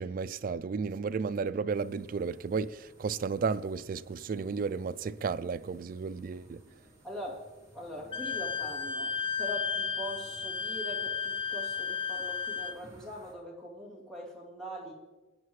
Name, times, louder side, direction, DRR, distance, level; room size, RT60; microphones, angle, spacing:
voice 1, 0.0-6.6, right 5 dB, 50° right, 0.3 m, -33 dB
sound 1, 1.7-13.3, right 1 dB, 20° right, 2.5 m, -58 dB
voice 2, 7.0-7.5 7.7-14.9, equal, 5° left, 2.7 m, -42 dB
Wind instrument woodwind instrument, 8.1-12.8, left 6 dB, 30° left, 0.4 m, -33 dB
18.5 x 9.3 x 3.2 m
head